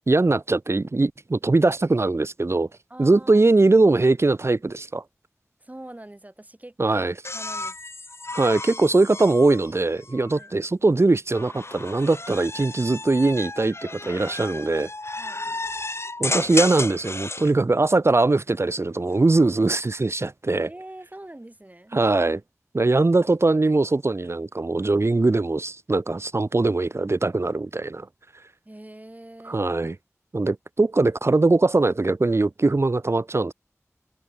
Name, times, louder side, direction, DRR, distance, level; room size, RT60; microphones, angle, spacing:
voice 1, 0.1-2.7 3.0-5.0 6.8-7.1 8.3-14.9 16.2-20.7 21.9-22.4 22.7-28.1 29.5-29.9 30.3-33.5, right 3 dB, 55° right, 0.8 m, -21 dB
voice 2, 2.9-3.5 5.6-7.1 7.3-7.8 10.3-10.5 15.2-15.4 19.6-19.7 20.6-22.0 28.7-29.7, right 1 dB, 30° right, 5.5 m, -43 dB
sound 1, 7.2-10.5 11.3-17.5 19.0-19.5, left 2 dB, 55° left, 2.1 m, -33 dB
wide cardioid pair, 40°, 5 cm